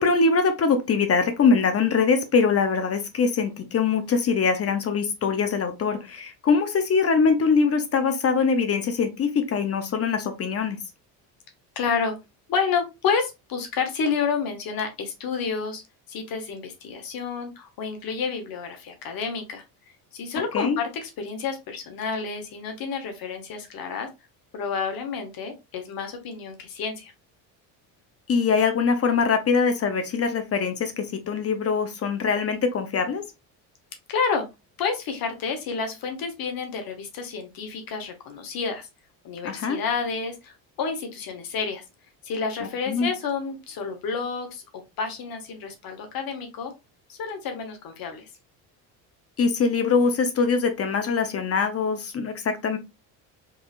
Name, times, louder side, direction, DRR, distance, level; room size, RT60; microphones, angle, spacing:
voice 1, 0.0-10.8 20.5-20.8 28.3-33.2 39.4-39.8 42.9-43.1 49.4-52.8, left 5 dB, 35° left, 8 dB, 0.7 m, -23 dB
voice 2, 11.7-12.1 12.5-15.8 16.1-19.6 20.1-24.1 24.5-27.1 34.1-34.5 34.8-38.9 39.2-41.8 42.2-44.6 45.0-46.7 47.1-48.3, left 5 dB, 55° left, 5 dB, 1.1 m, -29 dB
3.6 x 3.2 x 2.4 m, 0.24 s
supercardioid pair, 100°, 43 cm